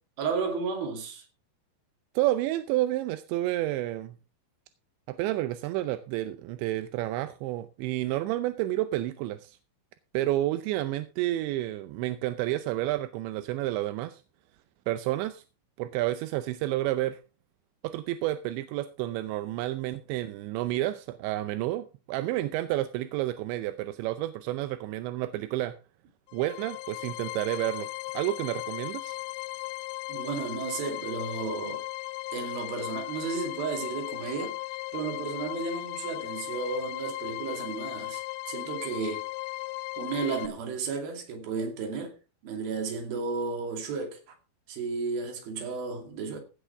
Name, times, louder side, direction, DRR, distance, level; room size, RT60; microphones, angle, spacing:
voice 1, 0.2-1.3 30.1-31.8 32.3-34.6 34.9-39.3 40.0-42.2 42.4-44.2 44.7-46.4, right 4 dB, 60° right, 4.1 m, -33 dB
voice 2, 2.2-4.2 5.1-9.6 10.1-14.2 14.9-15.4 15.8-17.2 17.8-25.8 26.3-27.9 28.1-29.2, right 15 dB, 85° right, 3.0 m, -30 dB
sound 1, 26.3-40.5, left 20 dB, 85° left, 3.0 m, -37 dB
16.0 x 10.0 x 3.4 m
omnidirectional pair, 5.1 m